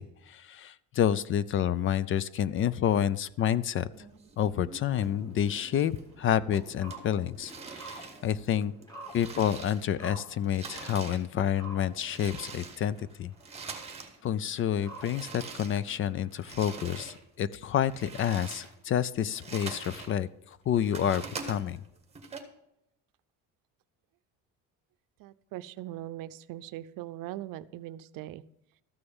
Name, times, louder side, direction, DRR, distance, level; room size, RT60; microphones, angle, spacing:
voice 1, 0.0-3.9 4.4-8.7 9.1-13.3 14.2-21.8, left 9 dB, 40° left, 19 dB, 0.4 m, -29 dB
sound 1, 3.9-5.1 5.4-6.2 6.5-10.1 10.4-14.2 14.5-17.2 17.6-20.1 20.5-22.4, right 4 dB, 20° right, 1.5 m, -44 dB
sound 2, 4.7-16.6, right 2 dB, 10° left, 2.1 m, -51 dB
voice 2, 25.2-28.4, right 14 dB, 75° right, 15 dB, 0.6 m, -40 dB
13.5 x 6.7 x 7.1 m, 0.80 s
cardioid pair, 155°, 34 cm